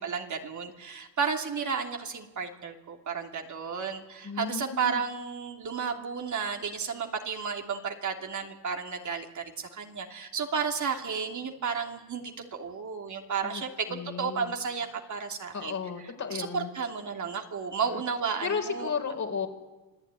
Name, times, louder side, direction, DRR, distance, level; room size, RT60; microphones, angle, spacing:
voice 1, 0.0-15.7 16.3-18.9, right 6 dB, 45° right, 3 dB, 3.0 m, -33 dB
voice 2, 4.2-5.0 13.4-13.6 13.9-14.5 15.5-16.7 17.9-18.0 18.4-19.5, left 5 dB, 40° left, 4 dB, 4.4 m, -34 dB
27.0 x 15.0 x 9.7 m, 1.1 s
supercardioid pair, 80°, 42 cm